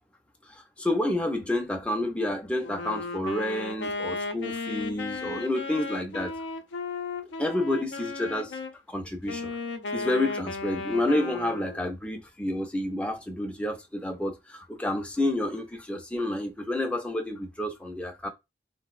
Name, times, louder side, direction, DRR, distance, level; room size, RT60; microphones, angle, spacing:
voice 1, 0.5-6.3 7.4-8.6 8.9-9.6 9.9-18.3, left 1 dB, 5° left, 0.4 m, -29 dB
Wind instrument woodwind instrument, 2.6-8.7 9.2-11.9, left 3 dB, 85° left, 0.4 m, -35 dB
3.8 x 2.0 x 2.3 m
head